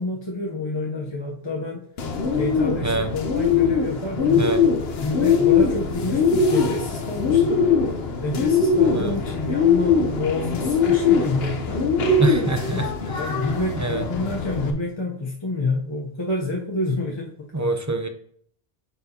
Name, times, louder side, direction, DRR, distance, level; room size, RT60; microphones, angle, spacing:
voice 1, 0.0-1.9 2.3-4.5 5.0-7.7 8.2-11.9 12.7-12.8 13.2-17.3 17.6-17.8, left 2 dB, 30° left, -2 dB, 0.8 m, -28 dB
Bird, 2.0-14.7, left 5 dB, 75° left, 1.0 m, -21 dB
voice 2, 12.2-12.9 13.8-14.0 17.5-18.1, right 3 dB, 30° right, 7 dB, 0.3 m, -24 dB
9.2 x 4.4 x 2.8 m, 0.63 s
omnidirectional pair, 1.1 m